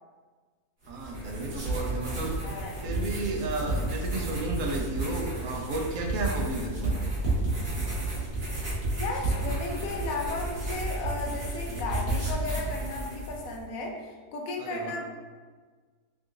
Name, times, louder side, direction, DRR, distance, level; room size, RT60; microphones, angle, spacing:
sound 1, 0.8-13.6, right 2 dB, 35° right, 1.3 m, -31 dB
voice 1, 0.9-2.4 2.8-7.0 14.6-14.9, right 2 dB, 65° right, 0 dB, 0.9 m, -33 dB
voice 2, 9.0-15.0, left 3 dB, 70° left, 0 dB, 1.0 m, -34 dB
3.7 x 2.6 x 3.7 m, 1.5 s
omnidirectional pair, 1.6 m